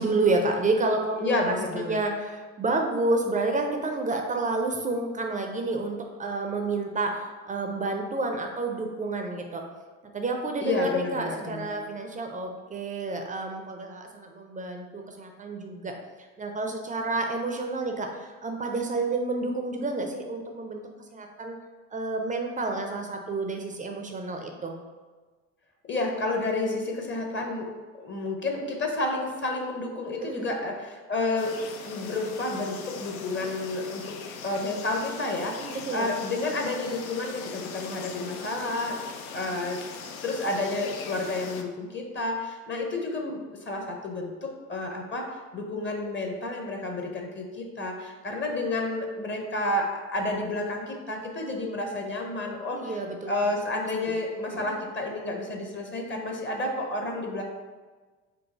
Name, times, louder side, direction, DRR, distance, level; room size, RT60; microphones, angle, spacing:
voice 1, 0.0-9.6 10.1-15.9 16.4-20.8 21.1-21.6 21.9-24.8 26.7-26.8 30.2-30.5 35.6-36.1 39.4-39.6 52.7-53.3 54.1-54.2 54.5-54.7, right 3 dB, 20° right, 3 dB, 0.4 m, -29 dB
voice 2, 1.2-2.0 10.6-11.7 25.9-27.7 27.9-34.2 34.4-39.0 39.3-39.8 40.2-45.3 45.5-52.8 53.3-57.4, left 2 dB, 25° left, 1 dB, 0.7 m, -30 dB
sound 1, 31.4-41.6, left 6 dB, 80° left, 0.5 m, -41 dB
4.0 x 2.6 x 3.5 m, 1.4 s
figure-of-eight pair, 50°, 42 cm